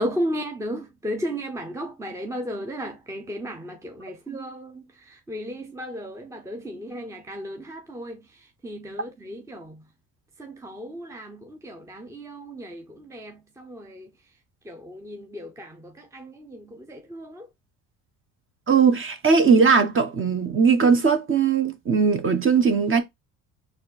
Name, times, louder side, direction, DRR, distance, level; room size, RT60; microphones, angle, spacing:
voice 1, 0.0-8.2 8.6-9.8 10.4-14.1 14.6-17.5, equal, 10° right, 0.8 m, -34 dB
voice 2, 18.7-23.0, right 5 dB, 30° right, 1.3 m, -19 dB
4.2 x 2.7 x 4.2 m
supercardioid pair, 90°, 39 cm